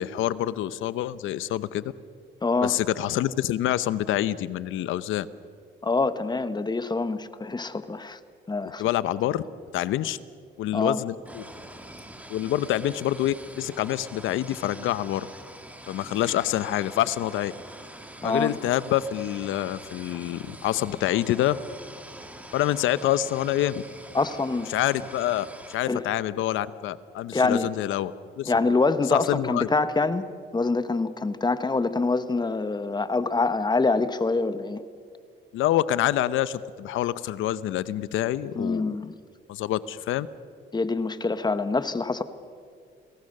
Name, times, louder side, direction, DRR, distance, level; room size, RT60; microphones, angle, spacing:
voice 1, 0.0-1.8 2.6-5.3 8.8-9.4 9.7-10.2 10.6-11.4 12.3-15.3 15.9-17.5 18.2-21.6 22.5-23.8 24.7-25.5 25.7-28.1 28.4-28.5 29.1-29.7 35.5-39.0 39.5-40.3, left 13 dB, 85° left, 16 dB, 0.8 m, -26 dB
voice 2, 2.4-2.7 5.8-8.2 8.5-8.8 10.7-11.0 18.2-18.5 24.1-24.7 25.9-26.0 27.3-27.7 28.5-34.8 38.5-39.2 40.7-42.2, left 3 dB, 20° left, 12 dB, 1.2 m, -25 dB
sound 1, 11.3-25.8, right 1 dB, 5° right, 2.5 m, -44 dB
29.0 x 18.0 x 6.6 m, 2.2 s
cardioid pair, 90°, 20 cm